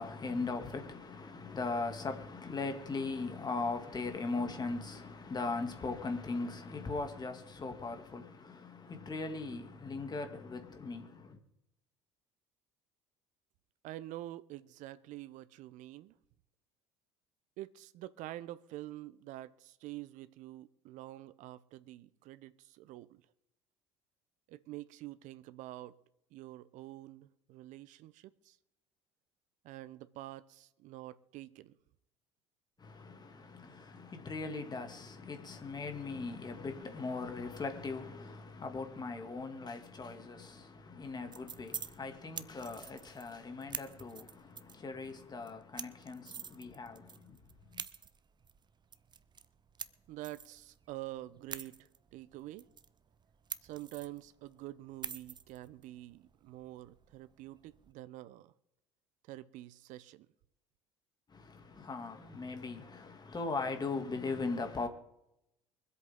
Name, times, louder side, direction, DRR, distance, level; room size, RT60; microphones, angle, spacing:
voice 1, 0.0-11.4 32.8-47.4 47.7-47.8 61.3-64.9, left 3 dB, 30° left, 2.5 m, -39 dB
voice 2, 13.8-16.1 17.6-23.3 24.5-26.0 26.3-28.6 29.6-31.8 50.1-52.7 53.6-58.5 59.3-60.3, right 15 dB, 60° right, 0.8 m, -47 dB
sound 1, 41.0-57.9, right 6 dB, 30° right, 0.8 m, -49 dB
24.5 x 8.2 x 3.8 m
hypercardioid pair, 65°, 14 cm